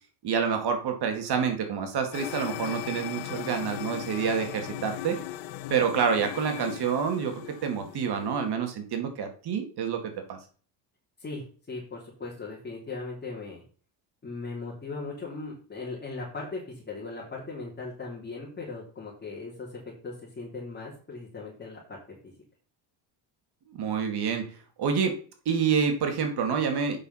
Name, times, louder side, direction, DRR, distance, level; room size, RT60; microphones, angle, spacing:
voice 1, 0.2-5.2 5.7-10.4 23.7-24.5 24.8-25.2 25.5-27.0, right 6 dB, 55° right, 5 dB, 2.2 m, -28 dB
sound 1, 2.1-8.5, left 14 dB, 85° left, 1.0 m, -38 dB
voice 2, 11.2-13.6 14.2-21.8 22.2-22.3, left 3 dB, 20° left, -5 dB, 3.4 m, -38 dB
8.1 x 5.9 x 5.6 m, 0.41 s
cardioid pair, 115°, 46 cm